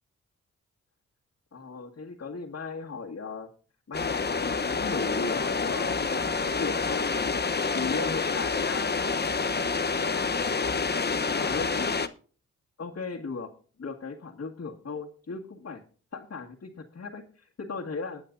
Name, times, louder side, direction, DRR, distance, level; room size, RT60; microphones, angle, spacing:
voice 1, 1.5-3.5 3.9-9.2 9.8-10.4 11.3-12.1 12.8-13.5 13.8-15.8 16.1-18.2, left 4 dB, 50° left, -3 dB, 2.0 m, -37 dB
sound 1, 3.9-12.1, left 4 dB, 30° left, 0.9 m, -28 dB
20.5 x 8.7 x 2.6 m, 0.40 s
supercardioid pair, 45°, 32 cm